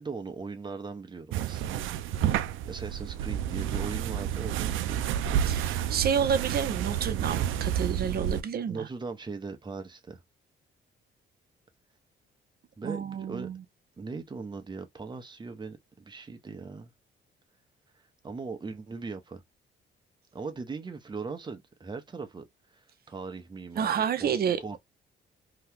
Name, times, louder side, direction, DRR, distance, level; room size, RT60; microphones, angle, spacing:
voice 1, 0.0-1.9 2.2-5.0 8.7-10.2 12.8-13.5 14.0-16.9 18.2-19.4 20.3-22.5 22.7-24.8, right 4 dB, 20° right, 0.8 m, -39 dB
sound 1, 1.3-8.4, right 10 dB, 85° right, 0.4 m, -30 dB
voice 2, 5.4-8.9 12.8-13.6 23.8-24.8, right 7 dB, 50° right, 0.7 m, -29 dB
2.9 x 2.3 x 3.5 m
cardioid pair, 90°, 20 cm